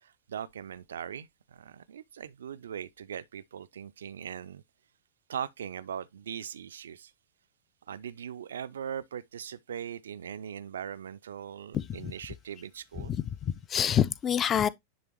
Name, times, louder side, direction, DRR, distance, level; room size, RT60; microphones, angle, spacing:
voice 1, 0.0-4.6 5.3-7.1 7.9-13.2, right 8 dB, 65° right, 0.3 m, -40 dB
voice 2, 11.7-12.1 13.0-14.7, left 9 dB, 25° left, 0.4 m, -27 dB
10.0 x 3.5 x 2.9 m
figure-of-eight pair, 90°, 0 cm